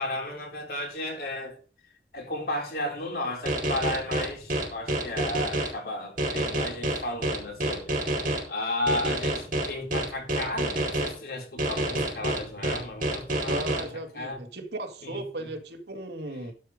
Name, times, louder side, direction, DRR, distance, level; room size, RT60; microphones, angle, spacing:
voice 1, 0.0-1.6 2.1-8.1 8.5-14.4 15.0-15.5, left 1 dB, 60° left, 3.9 m, -34 dB
sound 1, 3.5-5.7 6.2-8.4 8.9-11.1 11.6-13.8, right 1 dB, 50° right, 5.0 m, -27 dB
voice 2, 13.5-16.5, right 2 dB, 75° right, 2.1 m, -36 dB
12.0 x 5.1 x 6.6 m
head